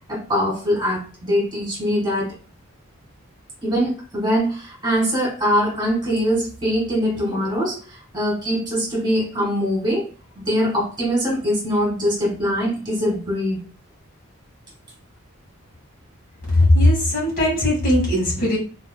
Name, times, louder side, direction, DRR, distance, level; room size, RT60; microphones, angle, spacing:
voice 1, 0.1-2.3 3.6-10.1 10.4-13.6, equal, 20° right, -5 dB, 1.8 m, -22 dB
voice 2, 16.5-18.6, left 1 dB, 45° left, -4 dB, 2.0 m, -18 dB
4.1 x 3.2 x 2.2 m, 0.37 s
head